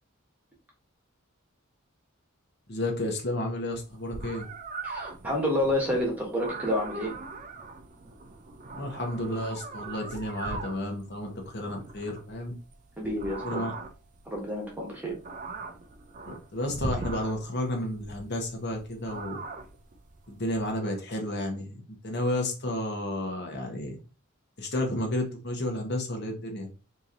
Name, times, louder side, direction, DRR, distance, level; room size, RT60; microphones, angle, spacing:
voice 1, 2.7-4.5 8.7-12.5 13.4-13.7 16.3-19.4 20.3-24.0 24.6-26.7, left 1 dB, 50° left, 2 dB, 0.9 m, -32 dB
sound 1, 3.7-20.7, right 3 dB, 35° right, 0.5 m, -40 dB
voice 2, 4.8-7.1 13.0-13.6 14.2-15.1, left 1 dB, 10° right, -1 dB, 1.1 m, -29 dB
3.0 x 2.8 x 3.7 m, 0.32 s
head